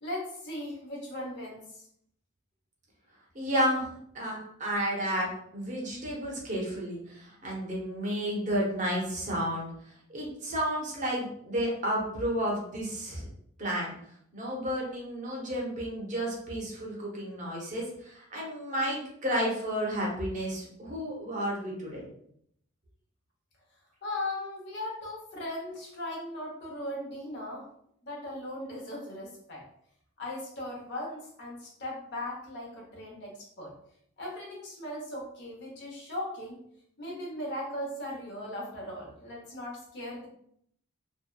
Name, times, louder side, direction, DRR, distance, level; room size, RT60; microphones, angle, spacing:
voice 1, 0.0-1.9 24.0-27.7 28.0-29.6 30.2-33.7 34.2-36.6 37.0-40.3, left 1 dB, 55° left, -2 dB, 0.8 m, -38 dB
voice 2, 3.3-3.9 4.1-13.3 13.6-14.0 14.3-22.1, equal, 40° right, -3 dB, 0.7 m, -32 dB
2.7 x 2.2 x 2.2 m, 0.68 s
head